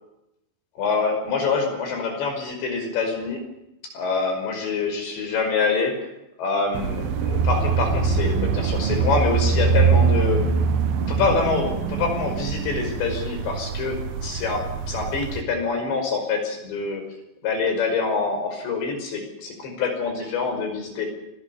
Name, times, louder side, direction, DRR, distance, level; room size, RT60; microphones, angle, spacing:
voice 1, 0.8-3.4 3.9-6.1 6.4-10.4 11.1-17.0 17.4-21.1, left 4 dB, 60° left, 5 dB, 7.4 m, -25 dB
sound 1, 6.7-15.4, right 5 dB, 60° right, 3.1 m, -23 dB
27.5 x 20.0 x 7.1 m, 0.87 s
omnidirectional pair, 5.7 m